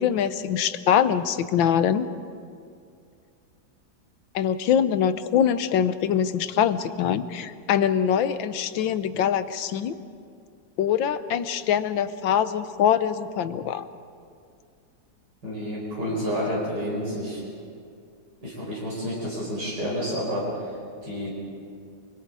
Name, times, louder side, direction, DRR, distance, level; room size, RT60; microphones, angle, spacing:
voice 1, 0.0-2.1 4.3-9.9 10.8-13.8, left 9 dB, 85° left, 12 dB, 1.6 m, -23 dB
voice 2, 15.4-17.4 18.4-20.7 21.0-21.3, equal, 65° right, -6 dB, 5.6 m, -29 dB
30.0 x 21.5 x 4.9 m, 2.3 s
omnidirectional pair, 2.0 m